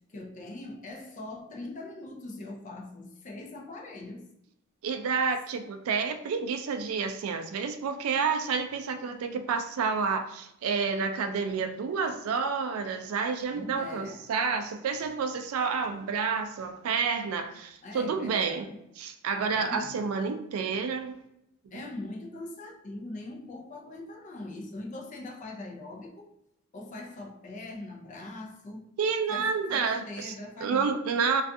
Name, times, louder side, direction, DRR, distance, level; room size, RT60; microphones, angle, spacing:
voice 1, 0.1-4.3 13.5-14.3 17.8-18.8 19.5-20.0 21.7-26.3 26.7-28.9 29.3-31.0, left 2 dB, 35° left, 0.4 m, -41 dB
voice 2, 4.8-18.7 19.0-21.2 21.7-21.9 29.0-30.3 30.6-31.4, right 5 dB, 85° right, 0.3 m, -29 dB
2.4 x 2.3 x 2.5 m
head